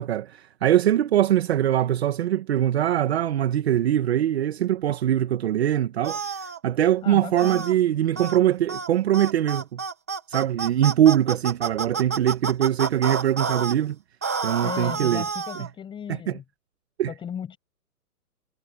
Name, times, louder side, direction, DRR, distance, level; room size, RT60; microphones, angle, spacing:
voice 1, 0.0-9.8 10.3-14.0 14.4-15.2 16.1-16.4 17.0-17.1, right 11 dB, 40° right, 1.4 m, -22 dB
sound 1, 6.0-6.6 7.4-7.7 8.2-8.4 8.7-8.9 9.1-13.7 14.2-15.7, right 5 dB, 10° right, 0.5 m, -29 dB
voice 2, 7.0-7.7 14.6-16.4 17.1-17.6, left 8 dB, 10° left, 7.0 m, -36 dB
hypercardioid pair, 165°, 47 cm